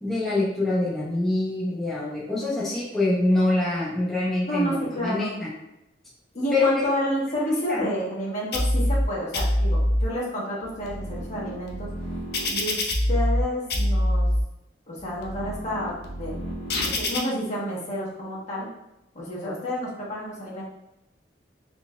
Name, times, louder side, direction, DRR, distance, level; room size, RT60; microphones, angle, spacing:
voice 1, 0.0-5.5 6.5-6.7 7.7-7.9, left 2 dB, ahead, -9 dB, 0.6 m, -25 dB
voice 2, 4.5-5.3 6.3-11.9 12.5-12.8 13.1-14.3 14.9-16.3 16.8-18.7 19.1-20.6, equal, 40° left, -6 dB, 1.1 m, -30 dB
sound 1, 8.5-9.0 9.3-10.0 10.6-13.4 13.7-14.4 15.0-17.2, left 1 dB, 60° left, 0.6 m, -25 dB
3.9 x 3.3 x 2.3 m, 0.89 s
head